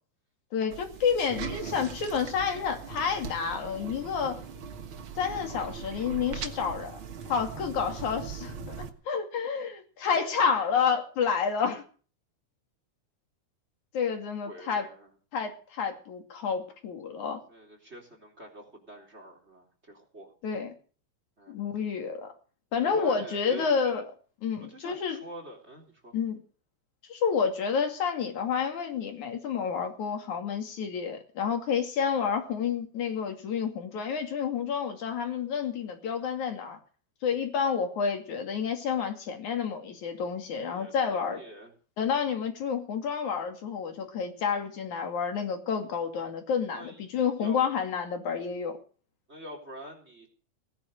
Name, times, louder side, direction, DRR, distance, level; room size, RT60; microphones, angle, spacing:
voice 1, 0.5-4.4 5.2-7.0 7.3-8.8 9.1-11.8 13.9-14.9 15.3-17.4 20.4-20.7 21.5-22.3 22.7-24.1 24.4-25.2 26.1-26.4 27.1-36.8 37.2-41.4 42.0-48.8, left 6 dB, 75° left, 5 dB, 3.8 m, -29 dB
sound 1, 0.7-8.9, right 6 dB, 50° right, 2.0 m, -40 dB
voice 2, 14.4-15.1 17.5-20.3 21.4-21.6 22.8-23.8 24.7-26.1 40.7-41.7 46.7-47.0 47.4-47.6 49.3-50.3, right 1 dB, 20° right, 4 dB, 3.9 m, -45 dB
19.0 x 10.0 x 6.6 m, 0.41 s
omnidirectional pair, 3.4 m